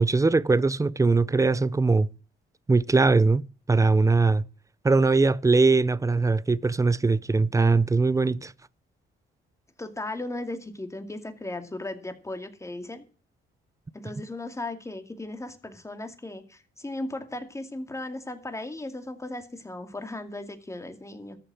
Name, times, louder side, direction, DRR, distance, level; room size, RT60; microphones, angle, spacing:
voice 1, 0.0-2.1 2.7-3.4 3.7-4.5 4.8-8.5, right 3 dB, 15° right, 0.5 m, -21 dB
voice 2, 9.8-13.0 13.9-21.4, left 2 dB, 15° left, 2.3 m, -36 dB
14.0 x 6.7 x 7.6 m
cardioid pair, 90°, 20 cm